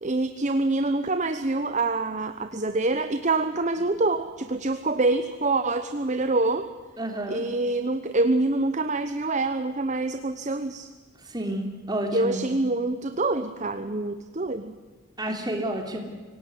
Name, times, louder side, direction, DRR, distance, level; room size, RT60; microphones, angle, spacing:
voice 1, 0.0-6.7 7.3-10.9 12.1-14.7, right 2 dB, 35° right, 10 dB, 0.9 m, -26 dB
voice 2, 7.0-7.4 11.3-12.4 15.2-16.0, right 1 dB, 20° right, 3 dB, 3.3 m, -30 dB
24.5 x 18.0 x 9.7 m, 1.4 s
head